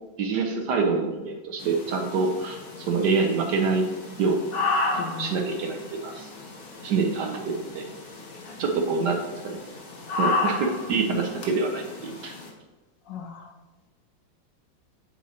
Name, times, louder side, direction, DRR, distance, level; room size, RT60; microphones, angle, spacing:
voice 1, 0.2-3.9 4.2-4.5 4.9-6.3 6.8-7.9 8.6-9.6 10.2-12.4, right 4 dB, 70° right, 3 dB, 1.1 m, -26 dB
sound 1, 1.6-12.5, left 3 dB, 55° left, 1.5 m, -33 dB
voice 2, 5.0-5.4 8.4-8.6 13.1-13.5, left 6 dB, 70° left, 4 dB, 1.2 m, -37 dB
8.5 x 4.3 x 2.8 m, 1.2 s
omnidirectional pair, 2.2 m